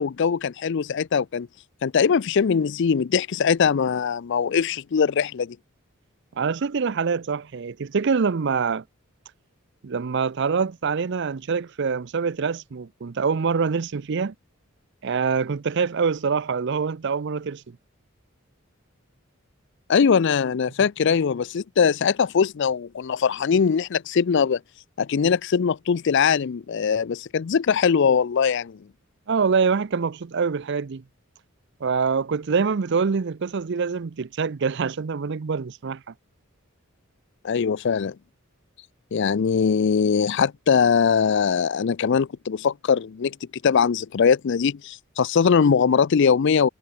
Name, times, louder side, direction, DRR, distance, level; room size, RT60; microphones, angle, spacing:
voice 1, 0.0-1.5 1.8-5.6 19.9-24.6 25.0-28.8 37.4-38.1 39.1-43.4 43.6-46.7, left 6 dB, 60° left, 0.4 m, -21 dB
voice 2, 6.4-8.8 9.8-14.3 15.0-17.8 29.3-31.0 31.8-36.1, right 5 dB, 55° right, 0.5 m, -25 dB
head